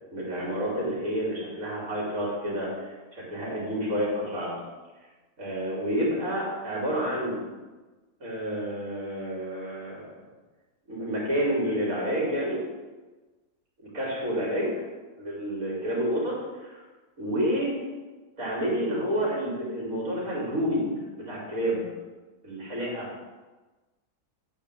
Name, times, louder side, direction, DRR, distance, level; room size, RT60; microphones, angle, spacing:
voice 1, 0.1-4.5 5.4-7.4 8.2-10.1 10.9-12.6 13.9-14.7 15.2-16.8 17.2-17.8 18.4-21.8 22.4-23.1, equal, 60° right, -5 dB, 3.4 m, -29 dB
9.2 x 5.0 x 6.8 m, 1.2 s
omnidirectional pair, 1.6 m